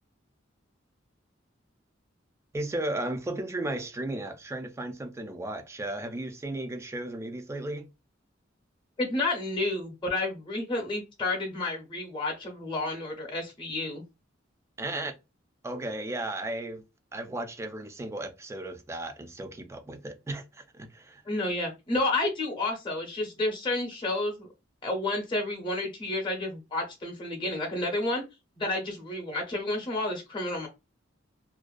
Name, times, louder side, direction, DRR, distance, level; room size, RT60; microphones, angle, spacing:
voice 1, 2.5-7.9 14.8-15.2 15.6-16.8 17.1-21.2, right 1 dB, 15° right, 0.3 m, -35 dB
voice 2, 9.0-14.0 21.3-24.5 24.8-28.2 28.6-30.7, left 2 dB, 25° left, 0.7 m, -30 dB
2.4 x 2.1 x 2.3 m
head